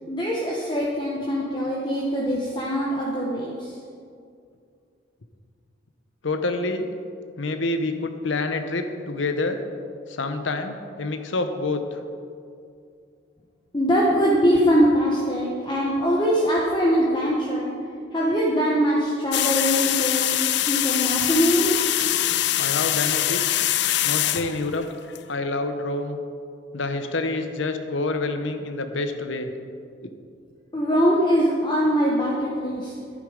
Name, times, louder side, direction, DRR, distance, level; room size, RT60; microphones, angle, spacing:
voice 1, 0.1-3.7 13.7-17.7 18.1-20.4 20.7-21.7 30.7-32.9, equal, 25° left, -4 dB, 1.1 m, -22 dB
voice 2, 6.2-6.9 7.4-9.6 10.1-11.8 22.6-23.4 24.0-24.9 25.3-26.2 26.7-29.5 30.0-30.1, left 2 dB, 75° left, 7 dB, 0.9 m, -27 dB
sound 1, 19.3-25.2, left 13 dB, 60° left, 0.4 m, -23 dB
11.0 x 9.9 x 5.0 m, 2.4 s
head